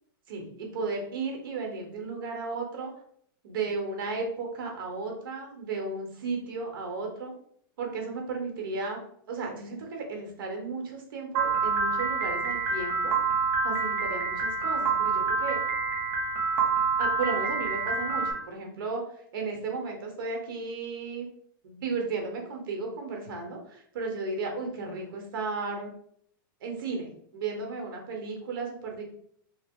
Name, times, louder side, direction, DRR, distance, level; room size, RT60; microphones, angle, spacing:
voice 1, 0.3-2.9 3.4-7.3 7.8-9.0 9.3-13.1 13.6-15.6 17.0-19.0 19.3-21.3 21.6-26.0 26.6-29.0, right 4 dB, 70° right, 2 dB, 1.0 m, -34 dB
Piano, 11.3-18.3, right 5 dB, 35° right, 0.6 m, -27 dB
2.9 x 2.0 x 3.6 m, 0.66 s
supercardioid pair, 175°, 12 cm